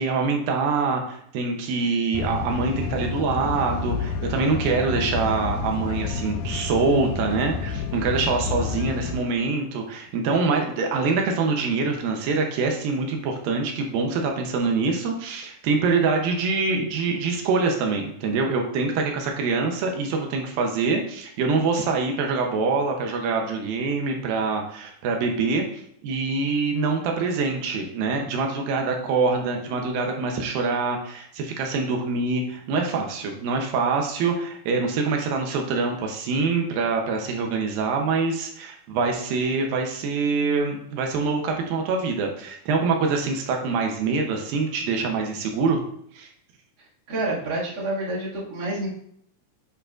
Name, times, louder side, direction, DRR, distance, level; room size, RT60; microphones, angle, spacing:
voice 1, 0.0-45.8 46.1-46.3, right 4 dB, 85° right, 2 dB, 2.6 m, -25 dB
sound 1, 2.1-9.2, left 5 dB, 75° left, 2.0 m, -29 dB
voice 2, 47.1-48.9, right 2 dB, 35° right, -6 dB, 2.1 m, -28 dB
8.8 x 5.4 x 2.5 m, 0.69 s
omnidirectional pair, 4.0 m